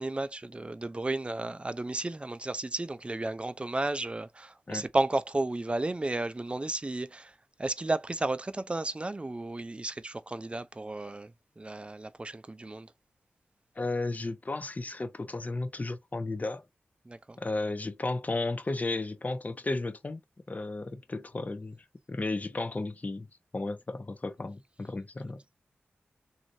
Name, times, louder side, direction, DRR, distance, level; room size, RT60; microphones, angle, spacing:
voice 1, 0.0-12.9 17.1-17.4, right 2 dB, 25° right, 0.4 m, -33 dB
voice 2, 13.8-16.6 17.4-20.2 20.5-21.7 22.1-23.3 23.5-25.4, left 2 dB, 40° left, 0.7 m, -33 dB
3.0 x 2.7 x 2.5 m
cardioid pair, 55°, 4 cm